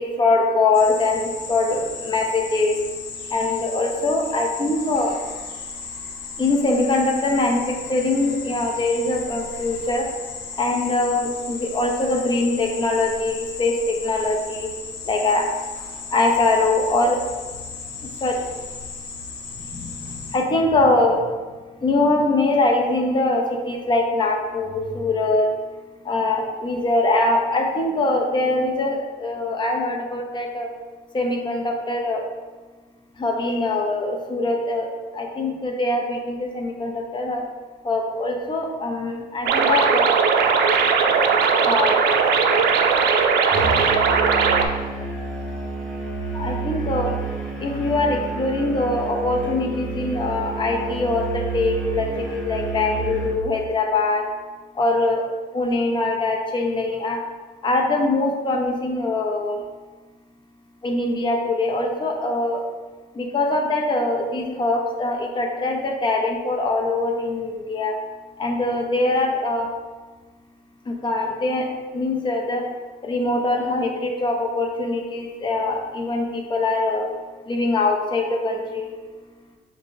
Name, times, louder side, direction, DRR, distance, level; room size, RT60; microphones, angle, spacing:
voice 1, 0.0-2.8 3.3-5.2 6.4-10.1 10.6-14.7 15.0-15.5 16.1-17.2 18.0-18.4 19.6-21.2 21.8-25.5 26.0-30.7 31.1-32.2 33.2-34.9 35.1-37.5 37.8-40.1 41.6-42.0 46.3-47.2 47.6-54.3 54.7-55.2 55.5-57.2 57.6-59.6 60.8-62.6 63.1-68.0 68.4-69.7 70.9-71.7 71.9-72.6 73.0-77.1 77.5-79.0, left 2 dB, 30° left, 1 dB, 0.8 m, -22 dB
sound 1, 0.7-20.4, left 5 dB, 80° left, 0.8 m, -35 dB
sound 2, 39.5-44.7, right 5 dB, 75° right, 0.5 m, -18 dB
Musical instrument, 43.5-53.4, right 3 dB, 5° left, 1.3 m, -30 dB
6.5 x 2.3 x 3.4 m, 1.3 s
cardioid pair, 110°, 17 cm